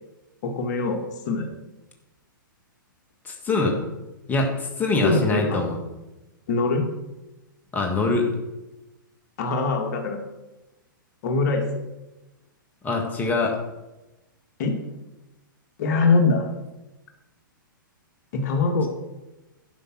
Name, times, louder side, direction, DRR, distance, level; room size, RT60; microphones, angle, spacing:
voice 1, 0.4-1.5 5.0-5.6 6.5-6.8 9.4-10.2 11.2-11.8 14.6-14.8 15.8-16.5 18.3-18.9, left 3 dB, 55° left, 4 dB, 1.7 m, -23 dB
voice 2, 3.2-3.8 4.3-5.8 7.7-8.3 12.8-13.6, left 3 dB, 15° left, 1 dB, 1.8 m, -23 dB
11.5 x 5.8 x 6.0 m, 1.0 s
hypercardioid pair, 130°, 11 cm